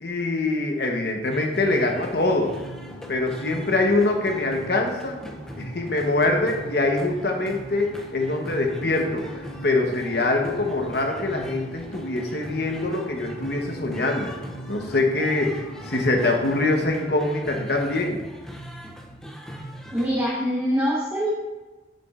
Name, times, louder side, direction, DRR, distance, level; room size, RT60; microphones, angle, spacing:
voice 1, 0.0-2.5 3.1-5.2 5.6-14.3 14.7-18.2, left 2 dB, 60° left, 2 dB, 1.0 m, -24 dB
sound 1, 1.3-20.2, equal, 5° left, 0.5 m, -40 dB
sound 2, 2.1-17.1, left 1 dB, 35° left, 1.9 m, -44 dB
voice 2, 19.9-21.3, equal, 15° right, -6 dB, 1.0 m, -24 dB
7.6 x 6.9 x 2.5 m, 1.2 s
head